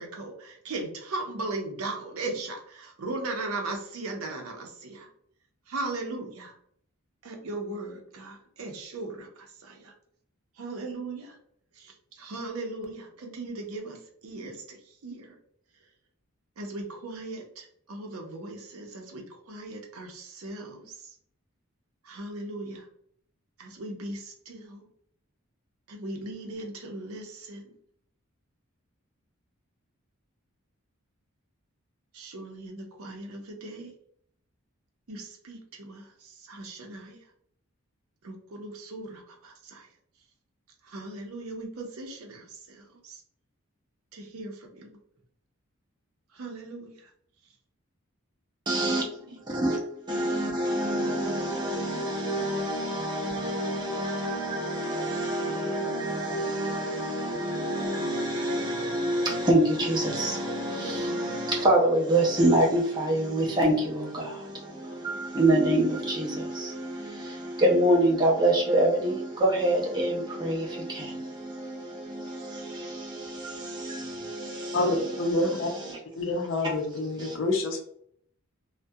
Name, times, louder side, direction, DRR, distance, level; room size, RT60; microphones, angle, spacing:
voice 1, 0.0-5.1 5.7-6.5 7.2-9.9 10.6-11.4 11.8-14.8 15.0-15.3 16.6-21.1 22.0-22.9 23.6-24.9 25.9-27.6 32.1-33.9 35.1-37.2 38.2-39.9 40.8-43.2 44.1-45.0 46.3-47.1 49.0-49.4, right 2 dB, 85° right, 0.6 m, -38 dB
voice 2, 48.7-49.0 49.5-49.8 50.1-75.1 75.5-76.0 77.2-77.4, right 1 dB, 20° right, 0.5 m, -26 dB
voice 3, 74.7-75.7 76.2-77.8, left 2 dB, 65° left, 0.5 m, -27 dB
2.3 x 2.1 x 2.6 m
head